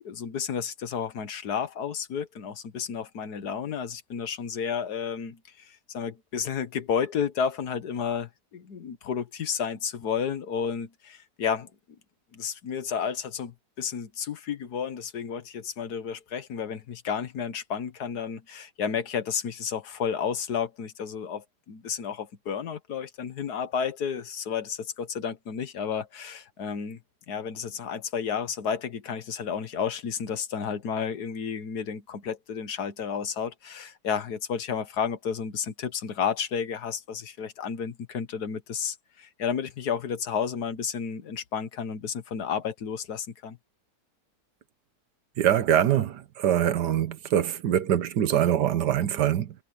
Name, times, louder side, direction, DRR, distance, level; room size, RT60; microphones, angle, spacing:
voice 1, 0.0-11.7 12.3-27.0 27.3-43.6, left 7 dB, 65° left, 1.7 m, -32 dB
voice 2, 45.4-49.5, right 10 dB, 75° right, 1.5 m, -24 dB
omnidirectional pair, 1.8 m